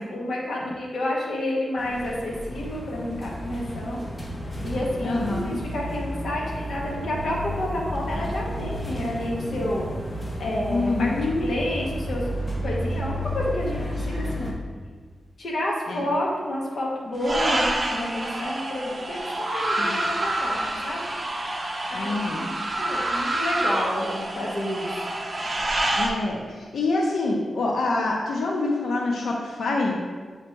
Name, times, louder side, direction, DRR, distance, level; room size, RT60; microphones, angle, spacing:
voice 1, 0.1-4.1 4.6-9.9 10.4-11.1 11.4-12.3 12.6-14.5 15.4-21.0 21.9-25.0 25.6-25.7, left 1 dB, 65° left, -3 dB, 1.3 m, -30 dB
sound 1, 1.8-14.5, equal, 25° left, 0.8 m, -32 dB
voice 2, 5.0-5.6 10.7-11.5 15.9-16.0 19.8-20.0 21.9-22.4 25.9-30.0, left 2 dB, 80° left, -1 dB, 0.8 m, -26 dB
sound 2, 17.2-26.1, right 1 dB, 25° right, 0.7 m, -27 dB
7.5 x 3.3 x 4.5 m, 1.5 s
wide cardioid pair, 145°, 0 cm